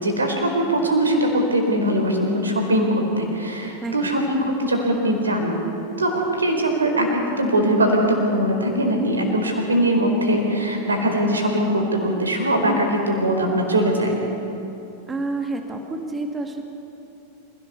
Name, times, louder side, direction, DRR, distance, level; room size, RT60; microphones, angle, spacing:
voice 1, 0.0-5.6 6.0-14.2, right 1 dB, 75° right, 3 dB, 4.5 m, -21 dB
voice 2, 15.1-16.6, right 2 dB, 15° right, 4 dB, 2.0 m, -29 dB
27.0 x 17.0 x 7.0 m, 2.9 s
figure-of-eight pair, 90°, 0 cm